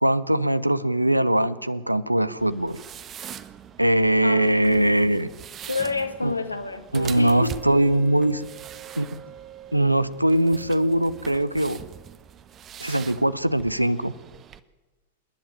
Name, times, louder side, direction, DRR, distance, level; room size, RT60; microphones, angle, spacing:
voice 1, 0.0-2.8 3.8-5.3 6.2-6.3 6.9-8.5 9.0-9.1 9.7-11.8 12.8-14.1, right 1 dB, 85° right, 18 dB, 0.8 m, -21 dB
Sliding Hard Folder, 2.4-14.6, right 9 dB, 30° right, 1.0 m, -43 dB
voice 2, 4.2-5.0 5.7-6.8 7.2-7.6, left 4 dB, 85° left, 8 dB, 1.7 m, -29 dB
Wind instrument woodwind instrument, 7.1-12.2, right 11 dB, 45° right, 2.1 m, -46 dB
27.0 x 11.0 x 9.1 m, 1.2 s
figure-of-eight pair, 90°, 0 cm